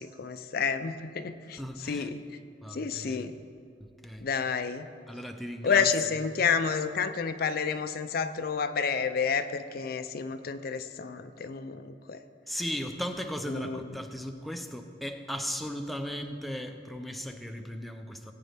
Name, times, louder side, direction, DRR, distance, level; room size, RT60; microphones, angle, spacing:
voice 1, 0.0-2.2 2.7-3.4 4.2-4.9 5.6-12.2 13.5-14.0, left 6 dB, 55° left, 10 dB, 0.5 m, -30 dB
voice 2, 1.6-2.1 2.6-3.3 4.0-4.3 5.1-5.9 12.5-18.3, equal, ahead, 5 dB, 0.5 m, -37 dB
17.5 x 9.0 x 3.5 m, 2.5 s
head